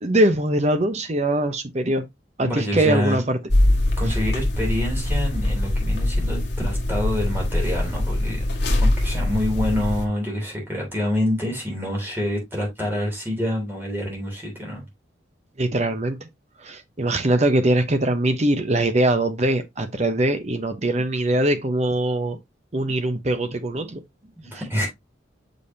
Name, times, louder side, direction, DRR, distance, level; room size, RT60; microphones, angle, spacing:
voice 1, 0.0-2.1 2.4-3.4 15.6-16.3 16.6-22.4 22.7-24.0, right 1 dB, 35° right, 0.9 m, -22 dB
voice 2, 2.4-3.2 4.0-8.4 8.8-14.8 24.4-24.9, left 1 dB, 10° right, 3.1 m, -27 dB
sound 1, 3.5-10.0, left 1 dB, 60° left, 1.5 m, -22 dB
6.4 x 5.4 x 2.8 m
head